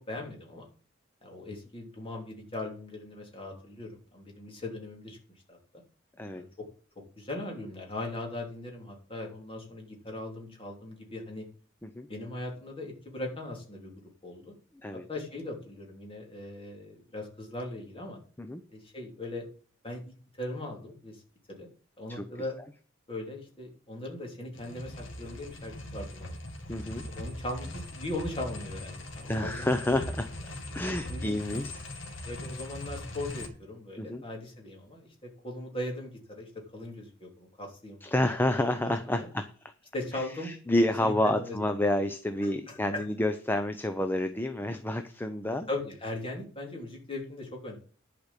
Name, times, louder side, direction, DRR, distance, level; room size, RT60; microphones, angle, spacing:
voice 1, 0.1-0.7 1.2-5.2 5.5-5.6 6.3-6.5 7.2-11.4 12.1-13.9 14.2-14.5 14.9-18.2 18.7-19.5 19.8-20.0 20.4-21.2 21.6-21.7 22.0-22.5 23.1-26.4 27.0-29.7 31.1-31.3 32.2-38.3 38.7-39.3 39.9-41.6 42.4-43.0 45.7-47.8, left 1 dB, 30° left, 0 dB, 3.2 m, -39 dB
sound 1, 24.5-33.5, left 1 dB, 70° left, 2.3 m, -40 dB
voice 2, 26.7-27.0 29.3-30.3 30.7-31.8 34.0-34.2 38.0-39.5 40.1-45.7, left 1 dB, 10° left, 8 dB, 0.7 m, -29 dB
11.0 x 5.2 x 8.3 m, 0.41 s
head